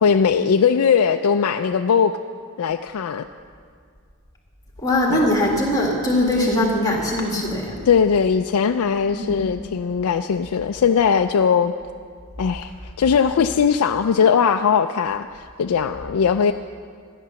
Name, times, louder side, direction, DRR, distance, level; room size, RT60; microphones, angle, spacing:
voice 1, 0.0-2.2 2.6-3.3 5.1-5.3 7.9-11.7 12.4-12.7 13.0-16.5, left 6 dB, 80° left, 6 dB, 0.4 m, -19 dB
voice 2, 4.8-7.7 9.1-9.4, left 1 dB, 15° left, -1 dB, 1.8 m, -21 dB
13.0 x 10.0 x 6.9 m, 2.1 s
head